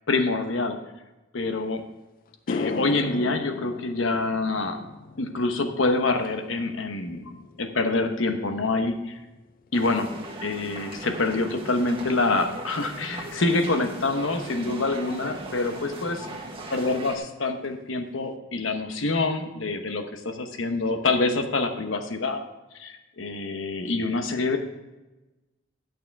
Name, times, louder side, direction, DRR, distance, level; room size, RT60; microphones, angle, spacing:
voice 1, 0.1-0.8 1.3-1.8 2.5-4.8 5.2-7.3 7.6-9.1 9.7-10.1 10.4-16.3 16.7-22.5 22.8-24.6, left 3 dB, 90° left, 6 dB, 1.0 m, -26 dB
sound 1, 1.7-1.8 2.3-10.8 11.1-11.5 15.1-15.2 16.8-16.9 17.2-17.4 17.6-18.2, left 4 dB, 45° left, 0.4 m, -38 dB
sound 2, 9.7-17.2, right 2 dB, 30° right, 1.3 m, -39 dB
11.0 x 6.6 x 4.6 m, 1.1 s
head